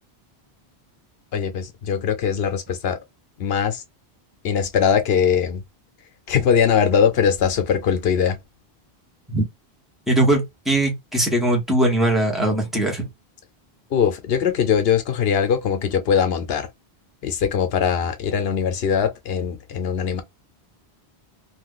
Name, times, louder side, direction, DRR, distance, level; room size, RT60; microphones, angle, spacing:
voice 1, 1.3-3.0 3.4-3.8 4.4-5.6 6.3-8.4 13.9-16.7 17.2-20.2, left 7 dB, 70° left, 0.9 m, -21 dB
voice 2, 10.1-13.1, right 1 dB, ahead, 1.1 m, -20 dB
2.7 x 2.3 x 3.6 m
omnidirectional pair, 1.1 m